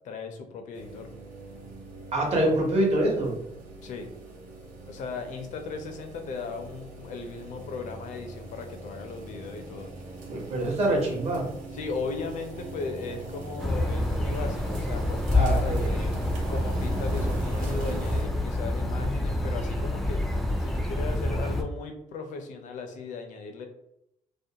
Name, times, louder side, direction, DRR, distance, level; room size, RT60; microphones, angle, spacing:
voice 1, 0.0-1.1 3.8-4.1 4.9-9.9 11.7-16.2 16.5-20.2 20.6-23.7, left 4 dB, 70° left, 6 dB, 0.5 m, -37 dB
sound 1, 0.7-18.2, right 2 dB, 90° right, 0.7 m, -40 dB
voice 2, 2.1-3.4 10.3-11.5 15.3-15.9, right 1 dB, 55° right, -1 dB, 0.9 m, -25 dB
sound 2, 13.6-21.6, left 1 dB, ahead, 0.3 m, -27 dB
2.4 x 2.1 x 2.8 m, 0.80 s
cardioid pair, 120°, 13 cm